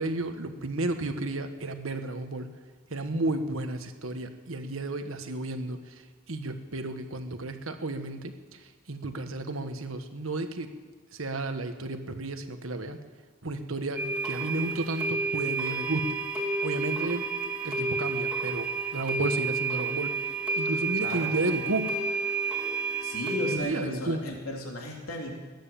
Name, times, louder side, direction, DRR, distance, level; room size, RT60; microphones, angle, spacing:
voice 1, 0.0-2.5 2.9-10.7 11.1-13.0 13.4-17.2 17.6-20.2 20.6-21.9 23.5-24.2, right 2 dB, 70° right, 7 dB, 1.4 m, -32 dB
sound 1, 14.0-23.6, right 3 dB, 5° right, 2.4 m, -30 dB
voice 2, 23.0-25.4, left 1 dB, 85° left, 0 dB, 3.2 m, -35 dB
21.0 x 9.6 x 7.1 m, 1.4 s
head